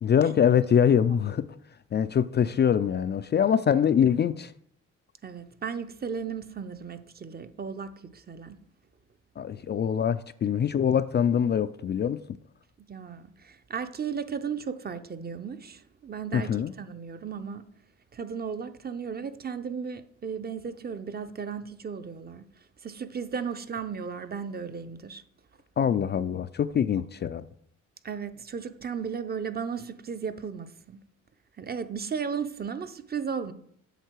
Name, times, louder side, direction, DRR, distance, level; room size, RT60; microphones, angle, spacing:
voice 1, 0.0-1.5 1.9-4.5 9.4-12.2 16.3-16.7 25.8-27.5, left 8 dB, 35° left, 0.4 m, -24 dB
voice 2, 5.2-8.6 12.9-17.7 18.1-22.4 22.8-25.2 28.0-31.0 31.6-33.5, right 6 dB, 30° right, 0.7 m, -35 dB
8.2 x 6.5 x 4.5 m
cardioid pair, 90°, 30 cm